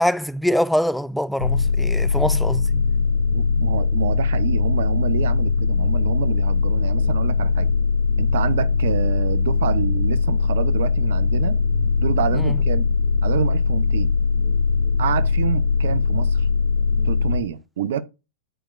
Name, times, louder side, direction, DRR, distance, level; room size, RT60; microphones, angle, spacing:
voice 1, 0.0-2.7 12.3-12.6, equal, ahead, 0.3 m, -23 dB
sound 1, 1.4-17.4, left 5 dB, 85° right, 1.9 m, -20 dB
voice 2, 3.3-7.7 8.2-11.6 12.0-12.9 13.2-14.2 15.0-16.5 17.0-18.0, right 8 dB, 65° right, 0.7 m, -27 dB
9.1 x 4.4 x 2.5 m
figure-of-eight pair, 105°, 0 cm